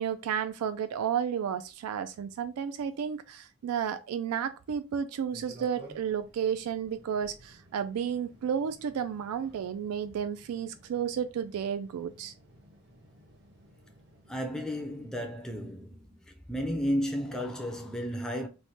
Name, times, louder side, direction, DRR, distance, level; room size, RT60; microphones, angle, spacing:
voice 1, 0.0-12.3, right 8 dB, 90° right, 0.3 m, -32 dB
sound 1, 5.3-15.1, right 1 dB, 50° right, 1.0 m, -55 dB
voice 2, 14.3-16.1 16.5-18.5, equal, 5° left, 0.4 m, -33 dB
3.2 x 2.1 x 4.1 m
head